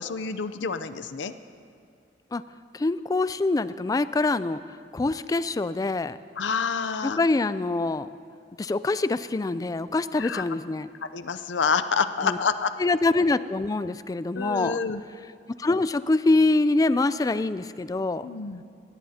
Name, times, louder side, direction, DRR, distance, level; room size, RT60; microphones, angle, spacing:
voice 1, 0.0-1.3 6.4-7.2 10.2-10.4 11.1-12.7 14.3-15.0 18.2-18.6, left 5 dB, 85° left, 11 dB, 0.6 m, -27 dB
voice 2, 2.7-4.6 4.9-6.2 7.0-8.1 8.6-10.9 12.2-12.4 12.8-14.8 15.6-18.3, left 2 dB, 20° left, 15 dB, 0.3 m, -24 dB
22.5 x 18.0 x 2.8 m, 2.3 s
head